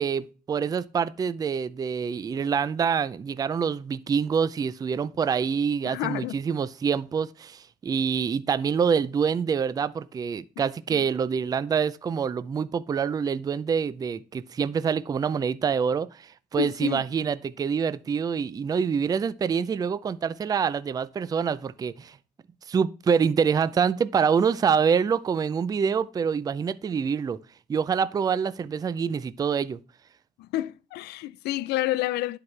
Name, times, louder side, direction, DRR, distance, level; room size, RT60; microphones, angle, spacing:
voice 1, 0.0-22.2 22.7-27.4 27.7-29.8, right 6 dB, 20° right, 0.4 m, -26 dB
voice 2, 5.8-6.4 10.9-11.0 16.6-17.0 30.4-32.4, left 15 dB, 80° left, 0.4 m, -29 dB
10.5 x 4.7 x 3.2 m
cardioid pair, 110°, 17 cm